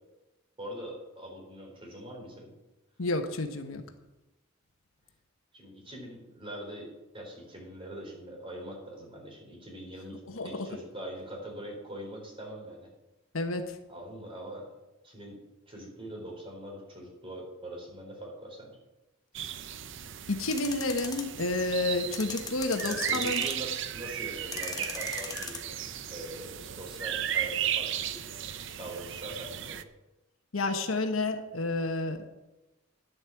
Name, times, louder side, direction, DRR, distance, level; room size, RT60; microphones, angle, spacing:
voice 1, 0.6-2.5 5.5-12.9 13.9-14.7 15.0-15.4 15.7-18.8 22.8-25.6 26.1-28.2 28.8-29.8, right 1 dB, 25° right, 0 dB, 3.9 m, -43 dB
voice 2, 3.0-3.8 10.3-10.7 13.3-13.8 20.3-23.4 30.5-32.3, left 2 dB, 80° left, 6 dB, 1.2 m, -30 dB
sound 1, 19.3-29.8, right 10 dB, 60° right, 0.6 m, -35 dB
sound 2, 20.4-21.2 22.1-23.7 24.5-25.6, left 5 dB, 20° left, 1.3 m, -38 dB
10.5 x 8.1 x 7.1 m, 1.0 s
head